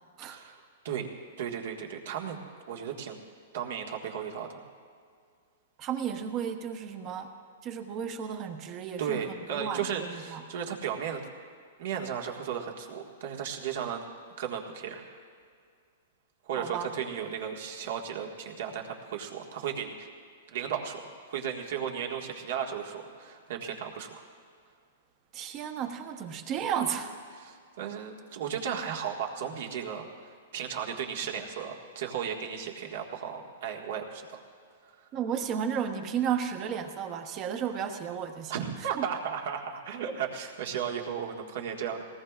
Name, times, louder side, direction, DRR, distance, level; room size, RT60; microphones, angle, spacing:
voice 1, 0.3-1.1 1.4-2.4 2.7-3.2 3.5-4.6 9.0-11.2 11.8-14.0 14.4-15.1 16.4-20.1 20.5-24.2 27.3-34.4 38.5-42.0, right 8 dB, 65° right, 1 dB, 1.7 m, -35 dB
voice 2, 5.8-7.3 7.6-9.2 9.5-10.4 16.6-16.9 25.3-27.1 35.1-38.5 38.9-39.0, right 8 dB, 30° right, 6 dB, 1.0 m, -33 dB
20.5 x 18.5 x 2.5 m, 2.2 s
hypercardioid pair, 150°, 0 cm